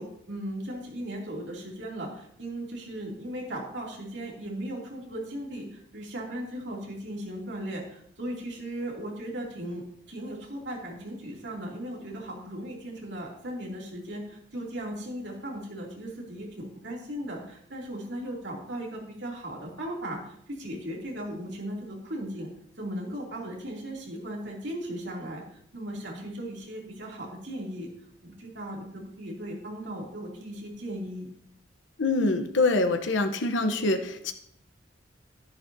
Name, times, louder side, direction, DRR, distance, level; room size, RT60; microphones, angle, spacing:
voice 1, 0.0-22.5 22.8-25.4 25.7-27.9 28.2-31.3, right 1 dB, 70° right, -2 dB, 2.9 m, -37 dB
voice 2, 32.0-34.3, left 2 dB, 85° left, 7 dB, 1.0 m, -25 dB
11.0 x 10.5 x 2.8 m, 0.67 s
head